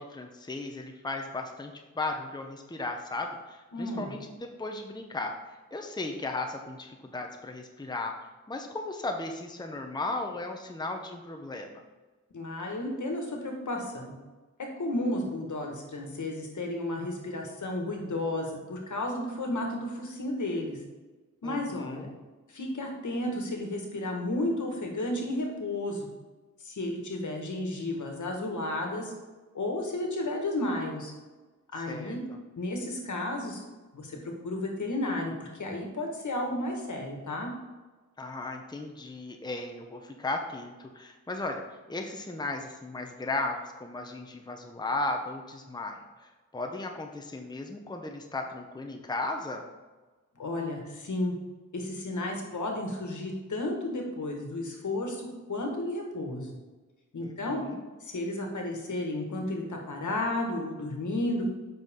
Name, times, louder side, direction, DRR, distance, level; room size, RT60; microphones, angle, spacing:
voice 1, 0.0-8.1 8.5-11.8 21.4-22.1 31.8-32.4 38.2-41.6 41.9-49.6 57.2-57.8, left 2 dB, 15° left, 3 dB, 0.8 m, -36 dB
voice 2, 3.7-4.1 12.3-14.1 14.8-20.8 21.4-22.1 22.5-26.1 26.6-29.1 29.5-31.1 31.7-32.2 32.6-33.6 33.9-37.5 50.4-51.3 51.7-56.5 57.1-57.6 58.0-61.5, left 1 dB, 70° left, 2 dB, 1.7 m, -32 dB
8.0 x 6.0 x 3.7 m, 1.2 s
wide cardioid pair, 75°, 31 cm